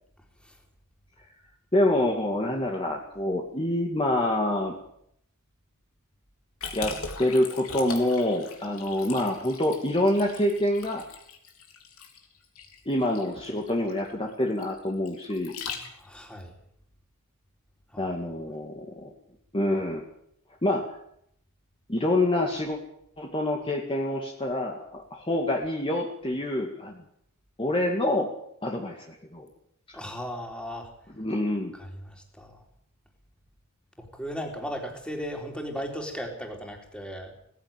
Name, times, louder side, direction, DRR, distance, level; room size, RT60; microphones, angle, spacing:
voice 1, 1.7-4.7 6.7-11.1 12.9-15.6 18.0-19.1 19.5-20.0 20.6-20.8 21.9-22.8 23.2-27.0 27.6-28.3 28.6-29.0 29.3-29.5 31.2-31.7, left 1 dB, 25° left, 0 dB, 2.2 m, -26 dB
Liquid, 6.6-16.2, left 5 dB, 70° left, 3.6 m, -40 dB
voice 2, 15.9-16.5 17.9-18.2 29.9-30.9 31.7-32.6 34.0-37.3, equal, 5° left, 2 dB, 3.9 m, -37 dB
18.5 x 16.0 x 9.1 m, 0.73 s
head